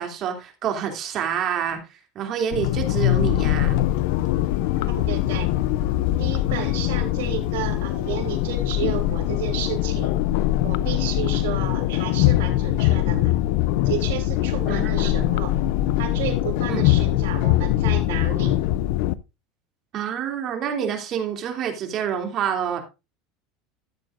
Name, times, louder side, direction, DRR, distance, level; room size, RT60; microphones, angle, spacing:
voice 1, 0.0-1.8 2.1-3.8 12.9-13.0 14.7-14.9 15.2-15.3 16.7-16.9 19.9-22.8, right 8 dB, 40° right, 4 dB, 2.8 m, -27 dB
sound 1, 2.5-19.1, left 14 dB, 70° left, 0.5 m, -22 dB
voice 2, 5.1-5.5 6.2-10.1 10.6-13.3 13.8-15.5 16.0-18.6, right 9 dB, 85° right, 3 dB, 3.3 m, -32 dB
14.0 x 7.7 x 2.5 m, 0.26 s
supercardioid pair, 130°, 0 cm